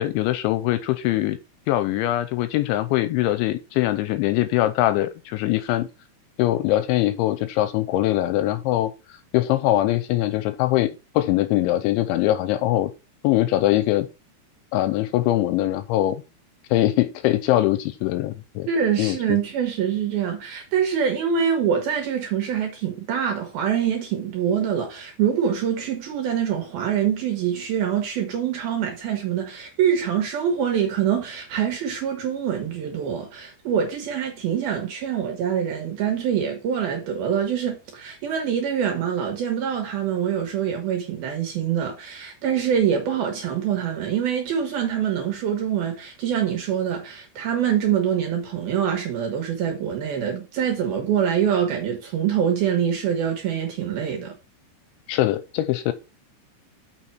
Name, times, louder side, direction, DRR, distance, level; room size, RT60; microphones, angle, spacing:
voice 1, 0.0-1.4 1.7-5.9 6.4-8.9 9.3-12.9 13.2-14.1 14.7-16.2 16.7-18.7 19.0-19.4 55.1-55.9, left 15 dB, 80° left, 2.8 m, -22 dB
voice 2, 18.7-54.3, right 8 dB, 70° right, 2.5 m, -25 dB
6.9 x 5.9 x 4.5 m
omnidirectional pair, 5.7 m